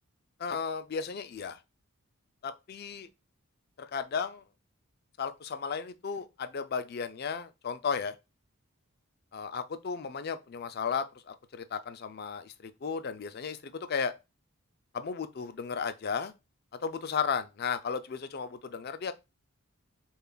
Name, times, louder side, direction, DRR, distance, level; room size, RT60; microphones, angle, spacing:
voice 1, 0.4-1.6 2.4-3.1 3.8-4.4 5.2-8.1 9.3-14.1 14.9-16.3 16.8-19.1, left 6 dB, 45° left, 0.4 m, -34 dB
6.6 x 2.4 x 2.3 m
head